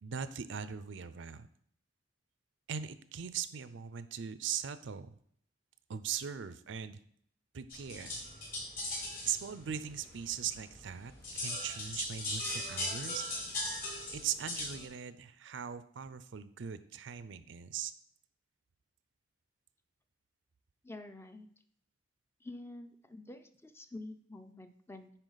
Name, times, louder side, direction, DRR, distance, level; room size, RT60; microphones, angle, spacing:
voice 1, 0.0-1.5 2.7-5.2 5.9-7.0 7.5-8.2 9.3-13.2 14.1-17.9, right 8 dB, 75° right, 13 dB, 0.5 m, -40 dB
sound 1, 7.7-14.9, left 1 dB, 50° left, 3.5 m, -39 dB
voice 2, 20.8-21.5 22.4-25.1, left 2 dB, 15° left, 8 dB, 0.4 m, -48 dB
9.8 x 4.5 x 4.0 m, 0.63 s
head